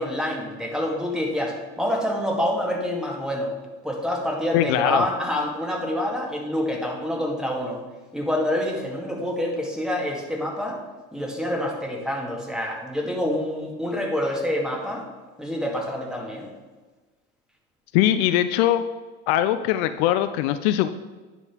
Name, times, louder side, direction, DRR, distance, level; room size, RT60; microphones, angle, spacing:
voice 1, 0.0-3.5 3.8-7.8 8.1-10.8 11.1-15.1 15.4-16.5, left 1 dB, ahead, -1 dB, 2.0 m, -27 dB
voice 2, 4.5-5.0 17.9-18.8 19.3-20.9, left 12 dB, 70° left, 11 dB, 0.5 m, -21 dB
9.7 x 3.9 x 4.5 m, 1.3 s
hypercardioid pair, 80°, 34 cm